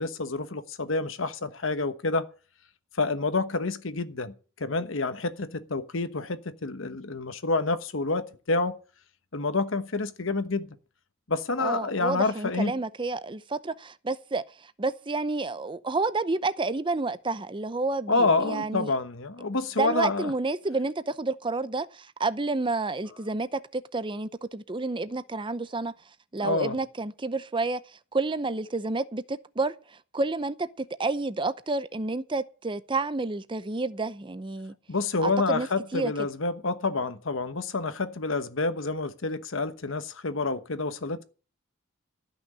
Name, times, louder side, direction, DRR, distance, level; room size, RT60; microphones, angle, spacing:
voice 1, 0.0-2.3 3.0-4.3 4.6-8.8 9.3-10.7 11.3-12.7 18.1-20.3 26.4-26.8 34.9-41.2, left 3 dB, 65° left, 1.1 m, -28 dB
voice 2, 11.6-18.9 19.8-25.9 26.3-27.8 28.1-29.7 30.1-34.7 35.2-35.7 35.9-36.3, right 3 dB, 25° right, 0.7 m, -30 dB
13.5 x 6.2 x 9.6 m
head